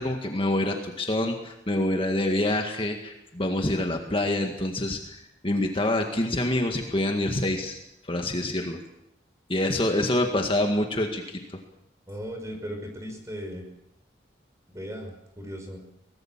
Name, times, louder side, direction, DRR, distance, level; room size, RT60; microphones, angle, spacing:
voice 1, 0.0-8.8 9.5-11.6, left 1 dB, 30° left, 3 dB, 1.9 m, -26 dB
voice 2, 12.1-13.6 14.7-15.8, equal, 15° right, 4 dB, 5.4 m, -37 dB
23.5 x 19.0 x 7.5 m, 0.82 s
head